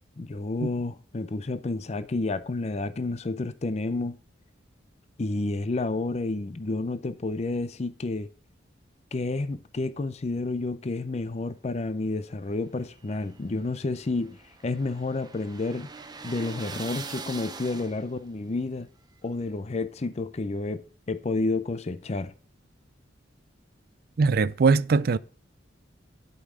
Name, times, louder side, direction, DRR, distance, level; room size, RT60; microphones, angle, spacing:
voice 1, 0.2-4.2 5.2-8.3 9.1-15.9 16.2-18.9 19.2-22.3, left 2 dB, 35° left, 0.5 m, -30 dB
sound 1, 12.8-18.3, right 4 dB, 20° right, 0.7 m, -42 dB
voice 2, 24.2-25.2, right 4 dB, 50° right, 0.4 m, -21 dB
8.4 x 5.5 x 6.1 m
head